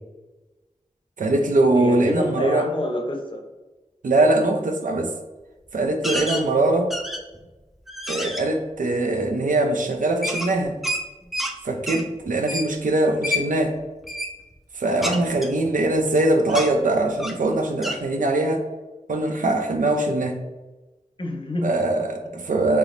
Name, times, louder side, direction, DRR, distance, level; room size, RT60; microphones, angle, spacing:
voice 1, 1.2-2.6 4.0-5.1 5.7-6.9 8.1-10.8 11.6-13.7 14.8-18.6 19.1-20.4 21.6-22.8, right 2 dB, 80° right, 4 dB, 0.5 m, -22 dB
voice 2, 1.7-3.5 6.1-6.2 21.2-21.8, left 1 dB, 40° left, 1 dB, 0.7 m, -28 dB
sound 1, 6.0-6.4 6.9-7.4 7.9-8.4 10.2-11.5 11.9-12.0 12.5-12.7 13.2-13.4 14.0-14.3 15.0-16.2 16.5-16.7 17.2-17.4 17.8-18.0, left 1 dB, ahead, 0.4 m, -28 dB
3.4 x 2.9 x 2.5 m, 1.2 s
wide cardioid pair, 60°, 13 cm